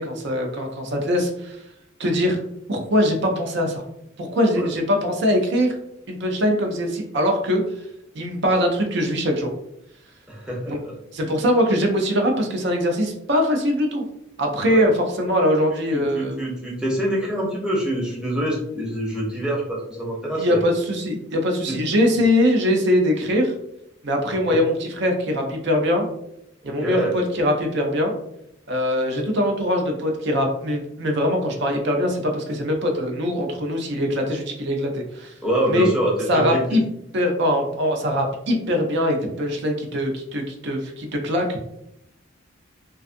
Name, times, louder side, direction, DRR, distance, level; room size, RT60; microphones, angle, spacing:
voice 1, 0.0-1.6 2.0-2.4 2.7-3.8 4.2-5.8 6.1-7.6 8.1-9.5 10.7-10.8 11.1-14.0 14.4-16.4 20.4-23.5 24.0-26.1 26.6-28.1 28.7-35.3 35.7-35.9 36.3-36.8 37.1-41.6, equal, 60° right, 3 dB, 0.5 m, -22 dB
voice 2, 10.3-10.9 14.6-14.9 15.9-20.6 21.7-21.8 22.1-22.2 24.5-24.6 26.6-27.1 35.4-36.8, right 1 dB, 5° right, -4 dB, 0.6 m, -25 dB
2.5 x 2.3 x 2.5 m, 0.78 s
head